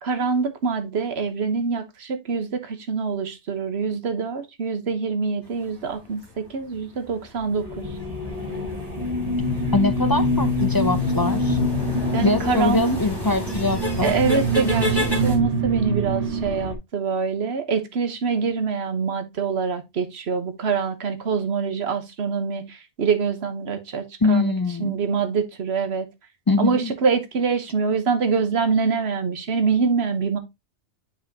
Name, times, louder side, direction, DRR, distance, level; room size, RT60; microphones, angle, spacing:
voice 1, 0.0-7.8 12.1-13.0 14.0-24.5 24.8-26.1 26.6-30.4, right 5 dB, 70° right, 1.3 m, -25 dB
sound 1, 5.5-15.4, left 2 dB, 20° left, 3.9 m, -33 dB
sound 2, 7.5-16.8, equal, 35° right, 1.3 m, -25 dB
voice 2, 9.7-11.6 12.2-14.1 24.2-25.0 26.5-26.9, left 3 dB, 35° left, 0.3 m, -23 dB
7.3 x 5.6 x 2.8 m
omnidirectional pair, 1.1 m